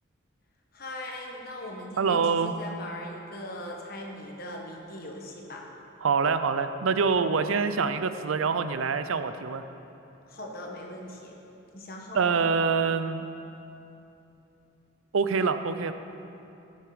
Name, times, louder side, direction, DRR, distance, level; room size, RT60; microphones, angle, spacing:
voice 1, 0.7-5.6 10.3-11.4 11.7-12.4, left 1 dB, 45° left, 0 dB, 1.5 m, -40 dB
voice 2, 2.0-2.5 6.0-9.6 12.1-13.2 15.1-15.9, right 5 dB, 85° right, 10 dB, 0.5 m, -25 dB
15.5 x 6.6 x 5.0 m, 2.8 s
head